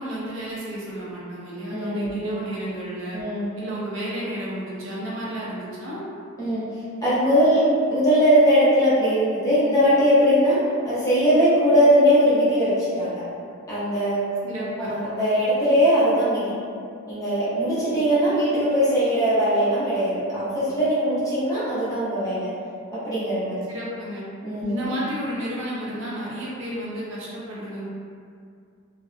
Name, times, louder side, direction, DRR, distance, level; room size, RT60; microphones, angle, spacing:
voice 1, 0.0-3.2 3.6-6.0 14.4-14.9 23.7-24.2 24.7-27.9, equal, 65° right, -7 dB, 0.6 m, -32 dB
voice 2, 1.7-2.1 3.1-3.5 6.4-6.6 7.0-10.6 10.8-13.2 13.7-14.2 14.8-16.5 17.1-22.5 22.9-23.6 24.4-24.8, equal, 15° left, -12 dB, 0.6 m, -20 dB
2.5 x 2.1 x 2.4 m, 2.3 s
head